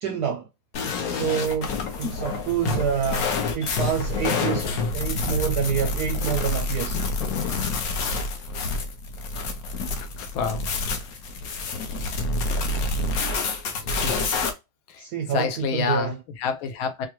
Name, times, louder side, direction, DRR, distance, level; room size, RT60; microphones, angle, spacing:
voice 1, 0.0-0.5 1.1-7.0 15.0-16.1, right 8 dB, 75° right, 0.9 m, -27 dB
sound 1, 0.7-14.5, left 3 dB, 65° left, 0.9 m, -27 dB
voice 2, 9.9-10.6 13.7-14.2 14.9-17.1, left 6 dB, 85° left, 1.6 m, -29 dB
4.7 x 2.2 x 2.9 m
omnidirectional pair, 2.3 m